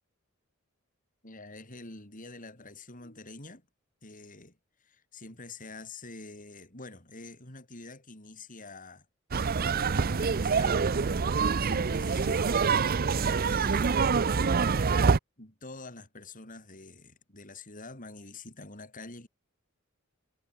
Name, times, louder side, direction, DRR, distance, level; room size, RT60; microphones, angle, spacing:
voice 1, 1.2-3.7 4.0-9.1 9.9-12.6 13.1-14.1 15.4-19.3, left 3 dB, 40° left, 6.2 m, -47 dB
sound 1, 9.3-15.2, right 5 dB, 45° right, 0.6 m, -26 dB
head